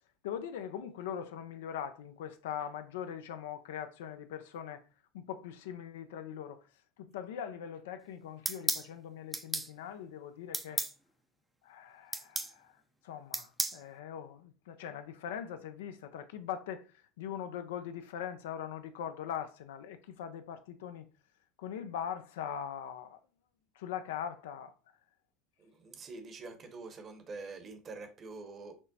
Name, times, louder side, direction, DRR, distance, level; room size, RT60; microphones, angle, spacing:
voice 1, 0.2-4.8 5.1-6.6 7.0-10.8 11.6-12.7 13.0-16.8 17.2-21.1 21.6-23.2 23.8-24.7, left 9 dB, 80° left, 0.4 m, -41 dB
sound 1, 8.5-8.9 9.3-9.7 10.5-10.9 12.1-12.5 13.3-13.8, right 2 dB, 10° right, 0.5 m, -33 dB
voice 2, 25.6-28.7, right 3 dB, 35° right, 0.9 m, -46 dB
6.1 x 2.0 x 2.7 m
hypercardioid pair, 85°, 0 cm